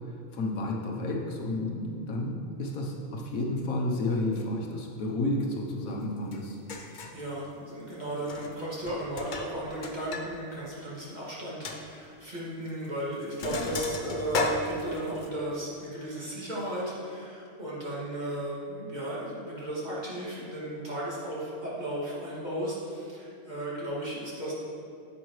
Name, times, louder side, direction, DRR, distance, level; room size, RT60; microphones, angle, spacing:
voice 1, 0.3-6.6, left 2 dB, 80° left, -1 dB, 1.4 m, -31 dB
Sink (filling or washing), 6.3-6.4 6.7-7.2 8.2-8.6 8.9-10.3 10.6-10.7 11.1-11.2 11.6-11.8 12.7-12.9 13.1-15.3, left 3 dB, 50° left, 0.6 m, -34 dB
voice 2, 7.1-24.5, right 1 dB, 30° right, -8 dB, 2.3 m, -35 dB
9.6 x 8.0 x 3.1 m, 2.7 s
omnidirectional pair, 1.4 m